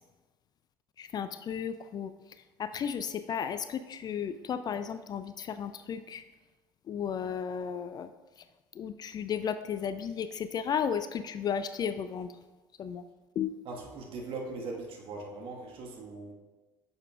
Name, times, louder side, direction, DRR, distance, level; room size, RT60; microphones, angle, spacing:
voice 1, 1.0-2.1 2.6-6.2 6.9-8.1 8.7-12.3 12.8-13.1 13.4-13.5, left 7 dB, 35° left, 12 dB, 0.3 m, -34 dB
voice 2, 13.6-16.3, right 3 dB, 50° right, 0 dB, 1.5 m, -40 dB
9.6 x 6.7 x 2.4 m, 1.2 s
figure-of-eight pair, 60°, 12 cm